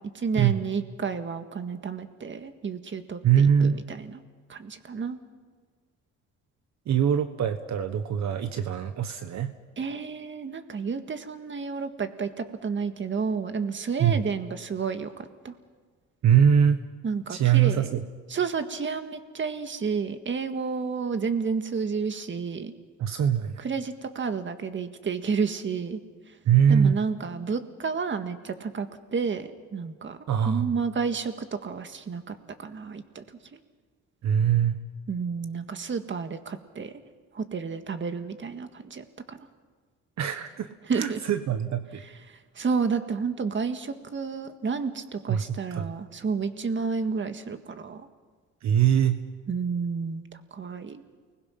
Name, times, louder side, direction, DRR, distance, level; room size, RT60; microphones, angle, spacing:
voice 1, 0.1-4.2 4.5-5.2 9.8-15.5 17.0-17.9 18.3-22.7 23.6-26.0 26.7-28.9 29.1-30.2 30.4-33.2 35.1-36.9 37.3-39.4 40.9-41.2 42.6-48.0 49.5-50.2 50.5-51.0, right 5 dB, 40° right, 8 dB, 1.8 m, -31 dB
voice 2, 3.2-3.8 6.9-9.5 14.0-14.2 16.2-16.8 17.3-18.0 23.0-23.6 26.4-27.0 30.3-30.7 34.2-34.8 40.2-42.0 45.3-45.9 48.6-49.2, right 8 dB, 65° right, 8 dB, 1.2 m, -23 dB
29.5 x 20.5 x 5.9 m, 1.5 s
cardioid pair, 90°, 30 cm